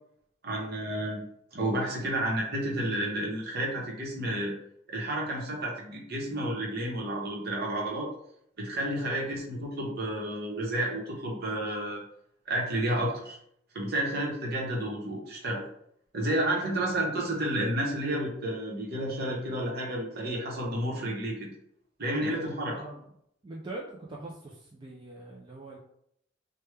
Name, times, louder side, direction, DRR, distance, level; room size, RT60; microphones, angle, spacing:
voice 1, 0.4-1.2 1.5-4.5 4.9-8.1 8.6-12.0 12.5-13.4 13.7-15.6 16.1-21.5 22.0-22.7, right 1 dB, 55° right, -2 dB, 0.9 m, -31 dB
voice 2, 16.3-17.0 22.6-23.1 23.4-25.8, right 2 dB, 25° right, -4 dB, 0.4 m, -43 dB
3.2 x 2.2 x 3.2 m, 0.71 s
head